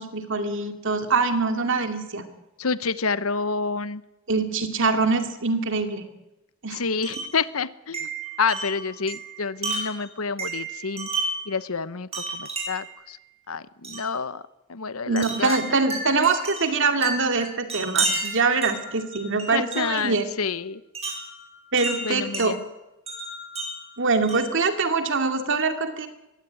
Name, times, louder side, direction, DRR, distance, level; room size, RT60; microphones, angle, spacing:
voice 1, 0.0-2.2 4.3-6.1 6.6-6.8 15.1-20.3 21.7-22.6 24.0-26.1, right 4 dB, 65° right, 7 dB, 2.5 m, -24 dB
voice 2, 2.6-4.0 6.7-8.1 8.4-11.1 11.5-13.2 13.5-14.4 14.7-15.6 19.5-20.8 22.0-22.6, left 5 dB, 85° left, 16 dB, 1.0 m, -28 dB
Wind chime, 7.0-7.4 7.9-11.5 12.1-12.9 13.8-14.1 15.2-20.1 20.9-22.5 23.1-24.6, right 3 dB, 30° right, 7.8 m, -32 dB
22.5 x 16.5 x 9.5 m, 0.94 s
head